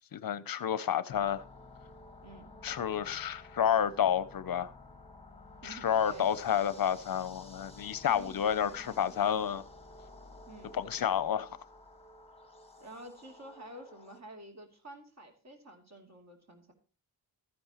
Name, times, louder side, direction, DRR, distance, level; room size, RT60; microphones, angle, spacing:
voice 1, 0.1-1.4 2.6-4.7 5.6-9.6 10.7-11.5, left 9 dB, 55° left, 0.6 m, -30 dB
sound 1, 1.1-14.2, left 2 dB, 15° left, 1.4 m, -53 dB
voice 2, 2.2-2.5 5.6-6.6 8.1-8.5 10.5-10.8 12.8-16.7, right 2 dB, 40° right, 2.7 m, -50 dB
13.0 x 10.5 x 2.9 m
wide cardioid pair, 130°, 41 cm